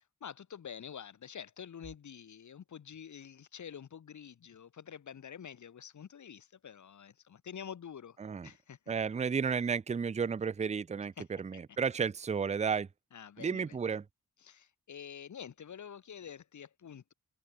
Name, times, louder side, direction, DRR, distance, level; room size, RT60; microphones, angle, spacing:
voice 1, 0.2-8.2 8.4-8.8 11.2-11.3 13.1-13.7 14.4-17.1, left 8 dB, 65° left, 1.8 m, -47 dB
voice 2, 8.2-8.5 8.9-12.9 13.4-14.1, right 6 dB, 20° right, 0.5 m, -32 dB
wide cardioid pair, 100°, 32 cm